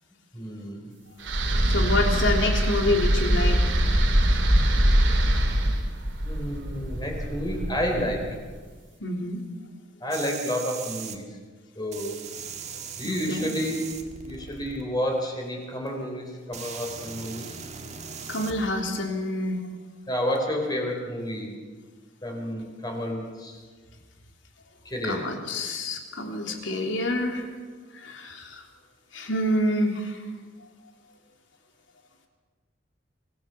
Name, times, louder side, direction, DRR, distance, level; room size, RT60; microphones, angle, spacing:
voice 1, 0.3-0.9 6.2-8.3 10.0-11.2 11.8-12.2 13.0-13.9 14.2-17.5 20.1-21.6 22.2-23.6 24.9-25.2, equal, 20° left, 1 dB, 3.8 m, -30 dB
sound 1, 1.2-8.4, right 1 dB, 75° right, 2.8 m, -23 dB
voice 2, 1.6-3.6 9.0-9.4 13.0-13.5 18.3-19.6 25.0-27.4 27.9-28.6 29.1-30.2, left 1 dB, 80° left, 3 dB, 3.3 m, -27 dB
sound 2, 10.1-11.2 11.9-14.8 15.9-16.0 16.5-18.7 20.4-20.5, right 6 dB, 35° right, 1.8 m, -39 dB
24.5 x 17.0 x 7.1 m, 1.4 s
head